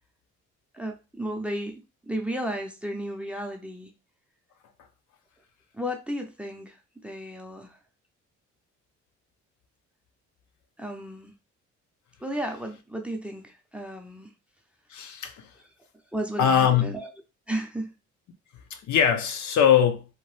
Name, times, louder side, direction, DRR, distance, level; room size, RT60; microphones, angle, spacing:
voice 1, 0.7-3.9 5.7-7.8 10.8-11.3 12.2-14.3 16.1-17.1 17.5-17.9, equal, 5° right, 0.5 m, -34 dB
voice 2, 14.9-15.5 16.4-17.0 18.7-20.0, left 8 dB, 70° left, 0.6 m, -22 dB
2.9 x 2.1 x 3.1 m
cardioid pair, 90°, 30 cm